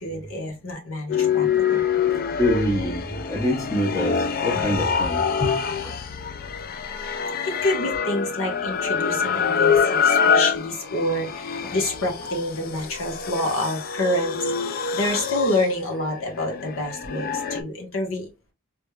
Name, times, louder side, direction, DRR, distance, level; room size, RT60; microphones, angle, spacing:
voice 1, 0.0-1.8 4.5-4.8 6.4-14.4 14.6-18.3, left 1 dB, 80° left, 1.5 m, -28 dB
sound 1, 1.1-17.6, left 6 dB, 45° left, 0.4 m, -25 dB
voice 2, 2.4-6.0 11.6-11.7, left 1 dB, 15° left, 0.9 m, -26 dB
4.0 x 3.4 x 2.4 m
head